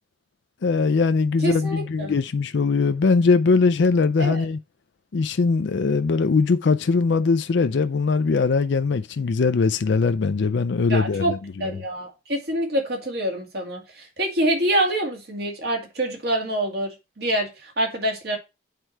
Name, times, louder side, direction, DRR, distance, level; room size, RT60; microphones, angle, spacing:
voice 1, 0.6-4.6 5.1-11.4, left 4 dB, 65° left, 0.4 m, -21 dB
voice 2, 1.4-2.2 4.2-4.5 10.9-11.3 11.6-18.4, right 1 dB, 55° right, 2.3 m, -26 dB
8.3 x 4.6 x 4.4 m
head